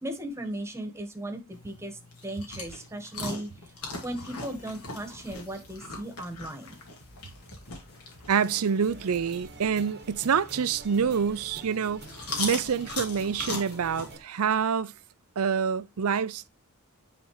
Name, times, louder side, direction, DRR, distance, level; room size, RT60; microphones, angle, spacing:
voice 1, 0.0-3.5 4.0-6.7, right 1 dB, 10° right, 1.4 m, -37 dB
sound 1, 1.5-14.1, left 3 dB, 80° left, 2.6 m, -40 dB
sound 2, 4.0-14.2, left 1 dB, 50° left, 2.7 m, -54 dB
voice 2, 8.3-12.0 12.4-14.9 15.4-16.5, right 6 dB, 70° right, 0.5 m, -26 dB
sound 3, 8.4-14.2, right 3 dB, 50° right, 1.1 m, -47 dB
9.4 x 4.3 x 3.1 m
head